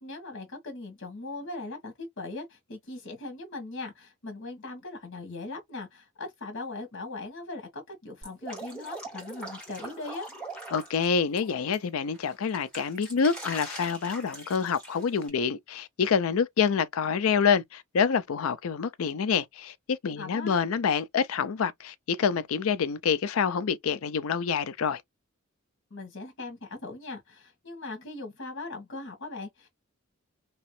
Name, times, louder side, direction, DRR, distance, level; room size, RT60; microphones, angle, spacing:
voice 1, 0.0-10.3 20.2-20.6 25.9-29.7, left 2 dB, 65° left, 1.4 m, -39 dB
Drip, 8.2-11.8 12.1-15.3, right 2 dB, 5° left, 1.9 m, -42 dB
voice 2, 10.7-25.0, left 6 dB, 80° left, 0.5 m, -27 dB
3.0 x 2.9 x 3.1 m
head